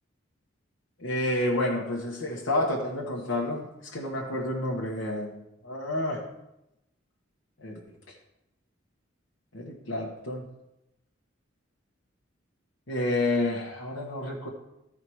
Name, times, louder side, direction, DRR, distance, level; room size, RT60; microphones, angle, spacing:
voice 1, 1.0-6.2 7.6-7.8 9.5-10.4 12.9-14.5, left 1 dB, 80° left, -3 dB, 1.3 m, -29 dB
13.5 x 4.9 x 4.6 m, 0.87 s
head